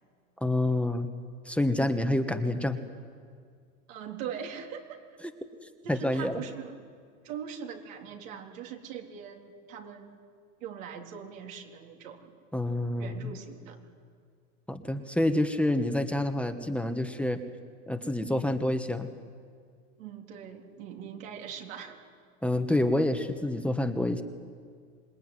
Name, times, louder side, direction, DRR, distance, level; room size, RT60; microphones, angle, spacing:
voice 1, 0.4-1.1 1.4-2.8 5.9-6.4 12.5-13.3 14.7-17.4 17.9-19.1 22.4-24.2, left 1 dB, 5° left, 7 dB, 1.5 m, -28 dB
voice 2, 3.9-5.0 5.8-6.8 7.2-10.2 10.6-12.3 13.0-13.8 20.0-22.0, right 7 dB, 70° right, 1 dB, 3.8 m, -41 dB
26.5 x 20.5 x 9.6 m, 2.1 s
supercardioid pair, 110°, 40 cm